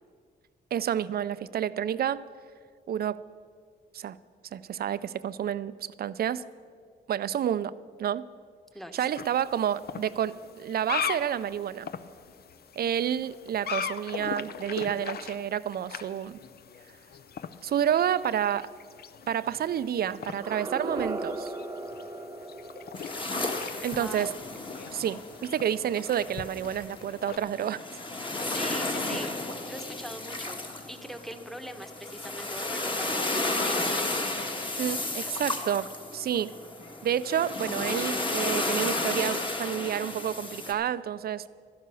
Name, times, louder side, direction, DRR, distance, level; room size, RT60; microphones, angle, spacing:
voice 1, 0.7-2.2 2.9-3.2 3.9-4.2 4.5-6.5 7.1-8.3 8.9-11.9 12.8-16.4 17.6-18.7 19.3-21.5 23.8-24.3 24.9-27.8 34.8-35.9 36.1-36.5 37.0-41.4, right 9 dB, 55° right, 16 dB, 0.5 m, -29 dB
voice 2, 8.7-9.1 23.9-24.4 28.2-29.3 29.7-30.6 30.9-34.0, equal, ahead, 7 dB, 1.1 m, -41 dB
sound 1, 9.1-27.4, left 7 dB, 55° left, 0.7 m, -40 dB
sound 2, 20.3-25.2, right 2 dB, 20° right, 0.8 m, -38 dB
sound 3, 22.9-40.7, left 2 dB, 25° left, 1.6 m, -33 dB
12.0 x 11.0 x 6.9 m, 2.1 s
cardioid pair, 90°, 19 cm